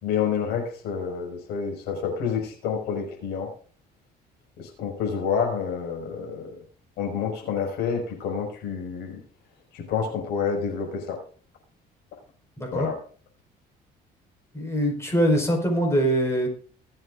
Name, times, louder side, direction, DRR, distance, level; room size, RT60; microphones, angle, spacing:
voice 1, 0.0-3.5 4.6-6.6 7.0-9.2 9.7-11.2 12.7-13.0, left 6 dB, 90° left, 2 dB, 5.6 m, -28 dB
voice 2, 14.5-16.5, right 1 dB, 15° left, 0 dB, 5.1 m, -23 dB
22.5 x 8.0 x 2.6 m, 0.42 s
cardioid pair, 110°, 17 cm